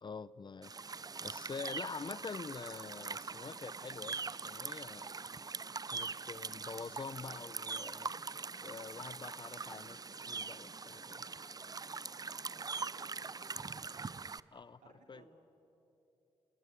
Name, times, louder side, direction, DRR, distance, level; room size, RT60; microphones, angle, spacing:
voice 1, 0.0-0.8 1.2-5.1 5.9-8.1 8.6-11.2 14.5-14.8 15.1-15.2, left 5 dB, 40° left, 19 dB, 0.7 m, -46 dB
sound 1, 0.6-14.4, right 4 dB, 30° right, 0.6 m, -43 dB
voice 2, 12.5-14.1 14.5-15.3, right 4 dB, 80° right, 3 dB, 3.6 m, -62 dB
28.0 x 19.0 x 9.8 m, 2.9 s
supercardioid pair, 45°, 12 cm